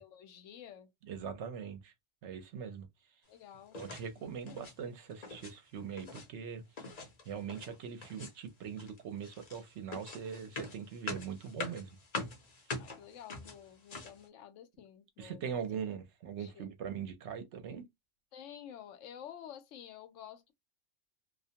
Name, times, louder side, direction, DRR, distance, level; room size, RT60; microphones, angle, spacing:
voice 1, 0.0-0.9 3.3-3.8 4.2-4.7 12.8-15.6 16.4-16.7 18.3-20.5, left 9 dB, 75° left, 0.9 m, -51 dB
voice 2, 1.1-1.9 2.2-2.9 3.7-6.6 7.3-11.9 15.2-17.9, right 7 dB, 70° right, 0.8 m, -41 dB
sound 1, 3.7-4.1 4.4-4.8 5.1-5.5 5.8-6.3 6.8-7.7 8.0-8.5 8.8-14.2, left 3 dB, 40° left, 0.6 m, -44 dB
2.4 x 2.1 x 2.7 m
omnidirectional pair, 1.3 m